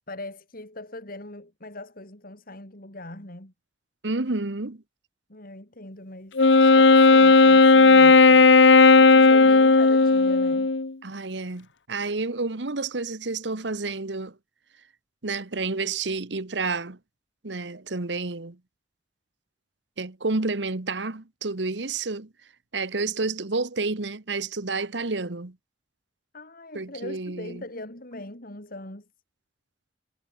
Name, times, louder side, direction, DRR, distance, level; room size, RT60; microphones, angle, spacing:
voice 1, 0.1-3.5 5.3-8.6 9.0-10.7 26.3-29.1, left 1 dB, 55° left, 6.4 m, -41 dB
voice 2, 4.0-4.8 11.0-14.3 15.2-17.0 17.4-18.6 20.0-22.3 22.7-25.6 26.7-27.6, right 3 dB, 75° right, 1.4 m, -30 dB
Wind instrument woodwind instrument, 6.4-10.9, left 3 dB, 85° left, 1.1 m, -14 dB
head